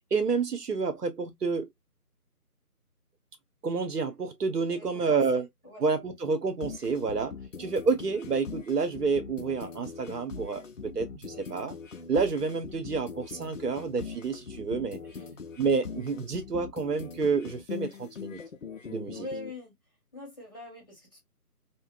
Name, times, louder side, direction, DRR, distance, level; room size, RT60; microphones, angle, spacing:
voice 1, 0.1-1.7 3.6-5.5 5.8-11.8 12.1-15.0 15.6-18.4 18.9-19.3, right 4 dB, 80° right, 0.9 m, -29 dB
voice 2, 4.7-5.9 15.1-15.3 19.1-19.8 20.1-21.2, left 2 dB, 10° left, 1.2 m, -44 dB
sound 1, 6.6-19.5, left 5 dB, 55° left, 0.6 m, -42 dB
2.8 x 2.3 x 2.2 m
figure-of-eight pair, 165°, 47 cm